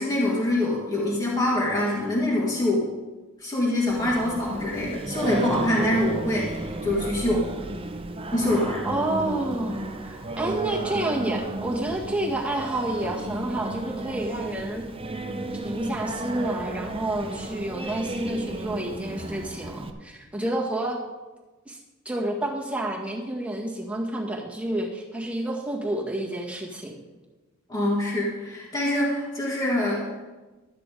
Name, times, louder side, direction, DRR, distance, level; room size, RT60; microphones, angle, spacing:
voice 1, 0.0-2.9 3.4-7.5 8.3-8.8 27.7-30.1, left 1 dB, 20° left, -5 dB, 1.7 m, -25 dB
Singing, 3.9-19.9, right 2 dB, 25° right, 0.7 m, -33 dB
voice 2, 8.8-14.8 15.6-21.0 21.7-21.8 22.1-27.0, right 1 dB, 5° right, -3 dB, 1.8 m, -29 dB
12.5 x 8.5 x 4.9 m, 1.2 s
head